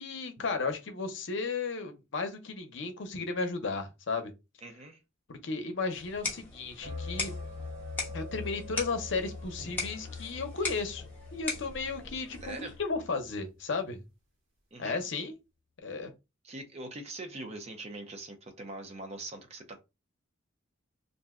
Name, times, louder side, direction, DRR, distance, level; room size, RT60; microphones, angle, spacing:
voice 1, 0.0-4.3 5.3-7.3 8.1-11.0 11.3-14.0 14.8-15.3 15.8-16.1, left 4 dB, 60° left, 0.7 m, -34 dB
voice 2, 4.6-5.0 12.4-12.8 14.7-15.0 16.4-19.8, right 2 dB, 30° right, 0.6 m, -42 dB
sound 1, 5.9-12.9, left 3 dB, 10° left, 1.0 m, -40 dB
sound 2, 6.8-13.4, left 3 dB, 80° right, 1.3 m, -43 dB
2.6 x 2.2 x 3.5 m
head